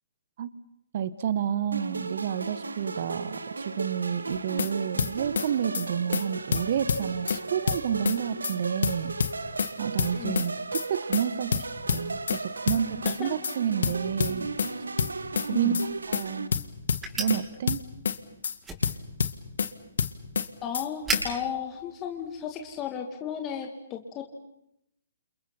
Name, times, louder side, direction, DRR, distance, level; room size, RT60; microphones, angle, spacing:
voice 1, 0.9-9.2 9.5-14.5 15.5-15.7 16.1-16.5 17.2-17.8, right 9 dB, 50° right, 15 dB, 1.3 m, -30 dB
sound 1, 1.7-16.5, right 3 dB, 80° right, 1.5 m, -36 dB
sound 2, 4.3-4.7 5.0-5.5 5.7-5.9 6.1-6.2 6.5-7.4 7.7-8.2 8.4-8.6 8.8-9.7 10.0-10.5 10.7-10.9 11.1-11.2 11.5-12.4 12.7-13.2 13.4-13.6 13.8-14.7 15.0-15.5 15.7-15.9 16.1-16.2 16.5-17.4 17.7-18.2 18.4-18.6 18.8-19.7 20.0-20.5 20.7-20.9 21.1-21.2, left 6 dB, 65° left, 1.7 m, -27 dB
voice 2, 15.5-15.8 20.6-24.3, left 8 dB, 25° left, 3 dB, 2.3 m, -34 dB
sound 3, 15.6-22.8, right 3 dB, 10° right, 6.2 m, -39 dB
29.5 x 28.5 x 5.8 m, 0.79 s
figure-of-eight pair, 130°, 0 cm